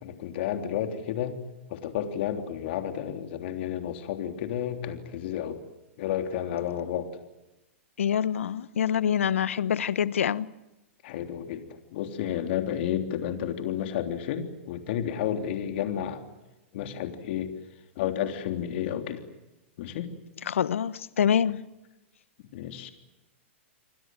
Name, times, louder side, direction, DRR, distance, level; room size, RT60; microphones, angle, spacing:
voice 1, 0.0-1.4 1.7-5.6 6.0-7.1 11.0-11.6 11.9-16.2 16.7-17.5 18.0-19.2 19.8-20.1 22.5-22.9, left 10 dB, 55° left, 3.4 m, -31 dB
voice 2, 8.0-10.5 20.4-21.6, left 8 dB, 75° left, 1.2 m, -25 dB
29.0 x 23.5 x 7.8 m
hypercardioid pair, 115°, 7 cm